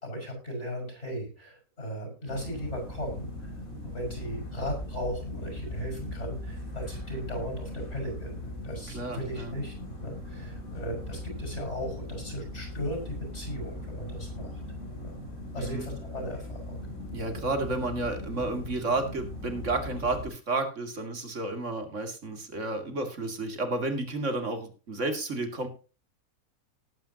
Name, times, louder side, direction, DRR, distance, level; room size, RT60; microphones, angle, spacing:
voice 1, 0.0-3.5 3.8-9.7 10.0-14.6 14.9-15.2 15.5-16.8 17.2-17.4, equal, 50° left, 2 dB, 6.4 m, -37 dB
sound 1, 2.3-20.3, left 1 dB, 70° left, 4.3 m, -39 dB
voice 2, 8.9-9.5 15.6-15.9 17.1-25.7, right 2 dB, 55° right, 6 dB, 2.7 m, -31 dB
19.0 x 9.2 x 2.9 m, 0.34 s
omnidirectional pair, 1.5 m